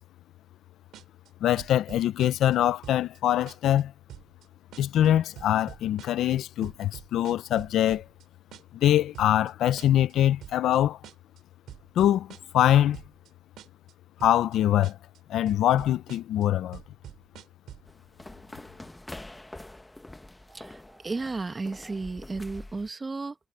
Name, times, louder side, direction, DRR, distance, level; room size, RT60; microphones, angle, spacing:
sound 1, 0.9-1.3 1.6-2.6 2.8-3.2 3.5-3.8 4.1-4.4 4.7-5.1 5.4-6.3 6.6-8.2 8.5-8.9 9.1-9.5 9.8-10.1 10.4-10.8 11.0-11.4 11.7-12.7 12.9-13.3 13.6-13.9 14.2-14.6 14.8-15.2 15.5-16.4 16.7-17.9, right 11 dB, 80° right, 3.4 m, -46 dB
voice 1, 1.4-3.9 4.8-8.0 8.7-11.0 12.0-13.0 14.2-15.0 15.3-16.8, left 12 dB, 80° left, 0.7 m, -23 dB
sound 2, 17.9-22.9, left 2 dB, 15° left, 1.1 m, -45 dB
voice 2, 20.5-23.3, right 3 dB, 25° right, 1.8 m, -34 dB
cardioid pair, 90°, 0 cm